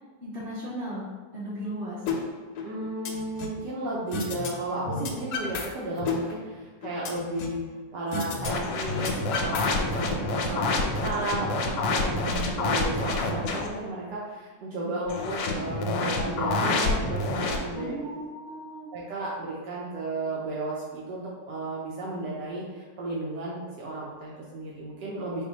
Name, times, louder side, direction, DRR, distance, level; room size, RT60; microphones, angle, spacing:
voice 1, 0.2-1.1 1.3-2.0 10.6-10.7 17.7-18.9, right 1 dB, 35° right, -8 dB, 1.4 m, -36 dB
sound 1, 2.1-2.2 2.6-3.6 4.1-4.5 4.8-5.7 6.0-7.6 8.1-8.5 8.8-10.1, left 4 dB, 70° left, 0.9 m, -32 dB
voice 2, 2.6-7.6 7.9-17.9 18.9-25.4, right 2 dB, 75° right, -5 dB, 1.2 m, -33 dB
sound 2, 8.4-13.7 15.1-17.6, left 2 dB, 90° left, 1.3 m, -28 dB
4.8 x 2.1 x 3.9 m, 1.4 s
omnidirectional pair, 2.0 m